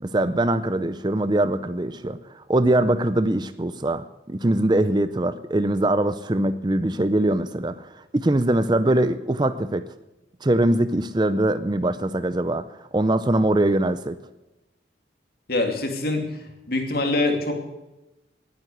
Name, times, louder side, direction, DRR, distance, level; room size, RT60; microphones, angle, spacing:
voice 1, 0.0-9.8 10.4-12.6 12.9-14.2, right 1 dB, 25° right, 13 dB, 0.5 m, -22 dB
voice 2, 15.5-16.3 16.7-17.5, left 2 dB, 55° left, 3 dB, 2.8 m, -24 dB
20.0 x 9.2 x 7.9 m, 1.0 s
head